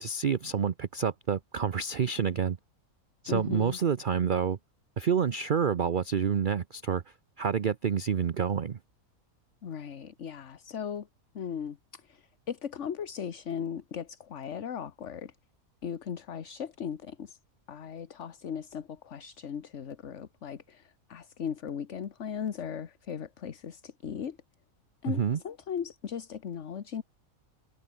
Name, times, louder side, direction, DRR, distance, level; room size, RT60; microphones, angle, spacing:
voice 1, 0.0-2.6 3.2-4.6 5.0-7.0 7.4-8.8 25.1-25.4, right 7 dB, 45° right, 0.7 m, -28 dB
voice 2, 3.3-3.8 9.6-11.1 11.3-15.3 15.8-17.4 17.7-24.4 25.0-27.0, left 8 dB, 55° left, 1.4 m, -37 dB
omnidirectional pair, 1.5 m